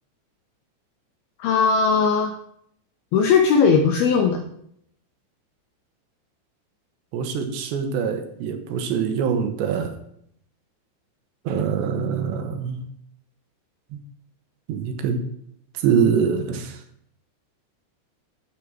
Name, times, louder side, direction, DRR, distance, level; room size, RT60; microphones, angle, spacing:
voice 1, 1.4-2.3 3.1-4.4, left 5 dB, 80° left, 2.2 m, -18 dB
voice 2, 7.1-9.9 11.5-12.8 14.7-15.2 15.8-16.7, right 7 dB, 75° right, 3.2 m, -24 dB
10.5 x 7.4 x 7.7 m
omnidirectional pair, 5.5 m